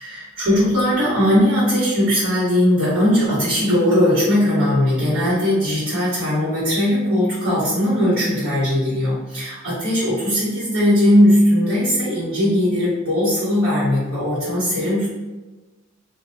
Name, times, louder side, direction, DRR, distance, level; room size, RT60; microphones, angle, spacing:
voice 1, 0.0-15.1, left 1 dB, 90° right, -13 dB, 1.3 m, -19 dB
2.5 x 2.1 x 2.6 m, 1.2 s
head